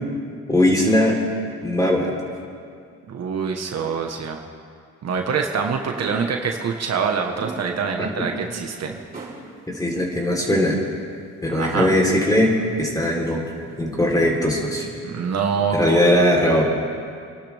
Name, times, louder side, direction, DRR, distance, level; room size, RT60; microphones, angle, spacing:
voice 1, 0.5-1.2 1.6-2.1 8.0-8.1 9.7-10.8 11.4-12.5 12.8-13.4 13.8-14.9 15.7-16.6, left 1 dB, 10° left, -1 dB, 3.8 m, -19 dB
voice 2, 3.1-4.4 5.0-9.0 11.5-11.9 15.0-16.0 16.5-16.6, right 6 dB, 60° right, 3 dB, 1.4 m, -25 dB
sound 1, 5.1-5.2 6.0-6.4 7.4-7.8 8.2-8.3 8.9-9.5 10.4-11.0 11.7-12.2 13.2-13.6 14.1-14.3 14.6-15.0, right 3 dB, 30° right, 3.9 m, -37 dB
27.0 x 12.0 x 3.6 m, 2.3 s
cardioid pair, 90°, 30 cm